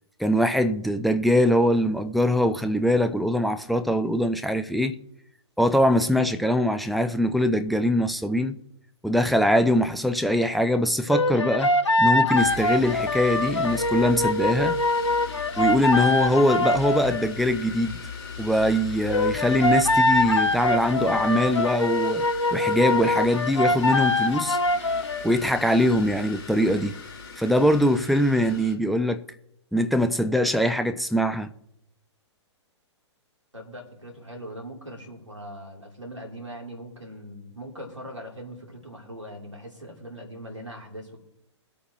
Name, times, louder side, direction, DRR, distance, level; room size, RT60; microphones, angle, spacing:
voice 1, 0.2-4.9 5.6-8.5 9.0-11.7 12.0-14.8 15.6-18.0 18.4-22.2 22.5-24.6 25.2-27.0 27.4-29.2 29.7-31.5, equal, ahead, 0.4 m, -22 dB
sound 1, 11.1-17.3 19.1-25.3, left 2 dB, 75° left, 1.2 m, -23 dB
sound 2, 12.4-28.8, left 5 dB, 55° left, 3.8 m, -39 dB
voice 2, 33.5-41.2, equal, 85° right, 3.2 m, -40 dB
21.5 x 8.6 x 3.0 m
figure-of-eight pair, 120°, 15 cm